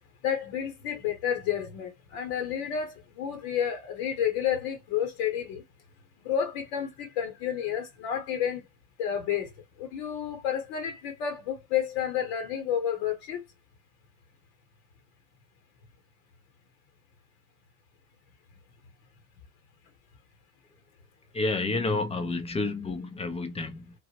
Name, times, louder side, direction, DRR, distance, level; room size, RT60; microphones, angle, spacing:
voice 1, 0.2-5.6 6.2-8.6 9.0-9.5 9.8-13.4, left 9 dB, 70° left, 0.9 m, -30 dB
voice 2, 21.3-23.9, left 3 dB, 15° left, 0.3 m, -30 dB
3.0 x 2.0 x 2.8 m
supercardioid pair, 90°, 45 cm